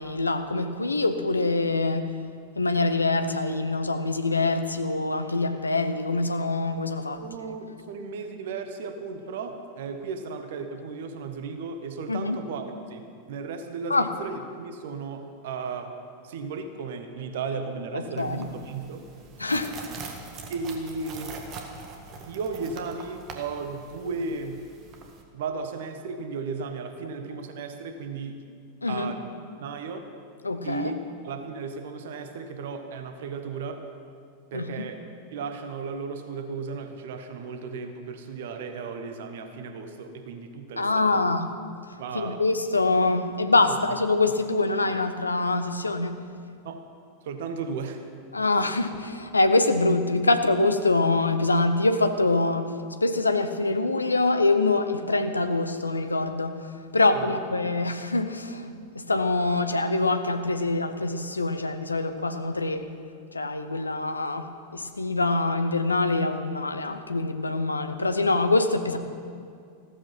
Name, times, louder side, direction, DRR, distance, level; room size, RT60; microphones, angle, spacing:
voice 1, 0.0-2.1 2.6-7.2 12.1-12.4 13.9-14.1 17.9-18.4 19.4-19.8 28.8-29.1 30.4-30.9 34.5-34.9 40.8-41.5 42.1-46.1 48.3-62.9 63.3-69.0, left 2 dB, 80° left, 9 dB, 0.8 m, -25 dB
voice 2, 7.2-15.9 16.2-19.0 20.5-21.3 22.2-24.6 25.3-28.4 28.9-29.3 29.6-30.1 30.6-33.8 34.5-35.0 35.3-41.2 42.0-42.4 43.7-43.8 46.6-46.8 47.2-48.1 57.1-57.4, right 4 dB, 55° right, 7 dB, 1.3 m, -35 dB
sound 1, 18.2-25.2, right 4 dB, 35° right, 1.8 m, -43 dB
15.0 x 14.0 x 5.8 m, 2.3 s
figure-of-eight pair, 90°, 0 cm